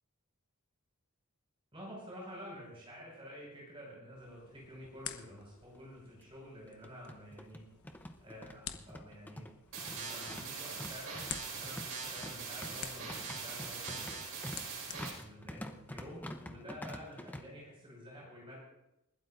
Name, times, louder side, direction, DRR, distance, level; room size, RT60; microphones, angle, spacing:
voice 1, 1.7-7.6 8.2-14.3 15.2-18.6, equal, 25° right, -4 dB, 5.6 m, -50 dB
sound 1, 4.2-16.3, left 9 dB, 85° left, 1.0 m, -51 dB
sound 2, 5.4-5.5 5.7-5.8 6.7-17.4, left 1 dB, 10° left, 0.7 m, -47 dB
sound 3, 9.7-15.1, right 5 dB, 85° right, 4.6 m, -42 dB
29.0 x 12.5 x 2.6 m, 0.90 s
head